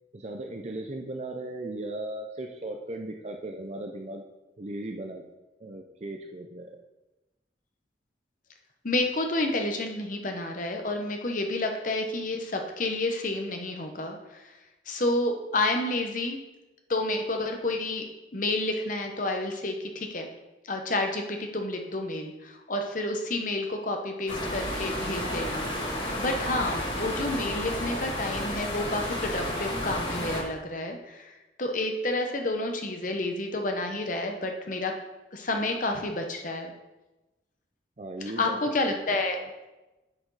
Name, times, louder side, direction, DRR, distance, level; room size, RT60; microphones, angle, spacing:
voice 1, 0.1-4.2 4.6-5.2 5.6-6.8 38.0-38.6 38.9-39.2, right 2 dB, 35° right, 2 dB, 0.5 m, -37 dB
voice 2, 8.8-14.4 14.9-16.4 16.9-18.0 18.3-20.3 20.6-31.3 31.6-34.9 35.3-36.7 38.4-39.4, left 2 dB, 45° left, 4 dB, 0.9 m, -30 dB
sound 1, 24.3-30.4, left 1 dB, 90° left, 2.5 m, -32 dB
9.8 x 5.0 x 4.0 m, 1.1 s
head